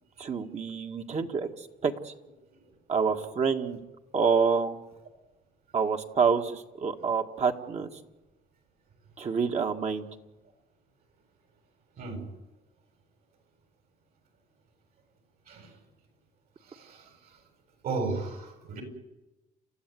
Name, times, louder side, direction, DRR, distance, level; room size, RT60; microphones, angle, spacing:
voice 1, 0.2-2.1 2.9-3.8 4.1-4.8 5.7-7.9 9.2-10.1, right 5 dB, 40° right, 4 dB, 2.1 m, -27 dB
voice 2, 16.7-17.1 17.8-18.8, right 3 dB, 65° right, 5 dB, 7.8 m, -34 dB
29.5 x 14.0 x 9.5 m, 1.0 s
cardioid pair, 110°, 17 cm